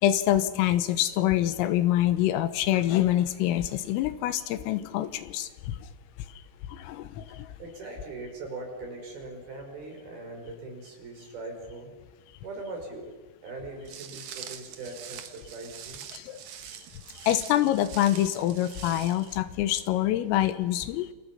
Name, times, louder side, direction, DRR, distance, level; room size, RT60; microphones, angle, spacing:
voice 1, 0.0-5.8 6.7-7.5 16.1-16.4 17.2-21.1, left 13 dB, 85° left, 12 dB, 3.8 m, -26 dB
voice 2, 7.3-11.9 12.4-16.0, right 2 dB, 50° right, 3 dB, 6.4 m, -41 dB
Walk footsteps, 13.9-19.4, right 9 dB, 80° right, 1.7 m, -44 dB
29.0 x 27.5 x 5.8 m, 1.2 s
omnidirectional pair, 5.9 m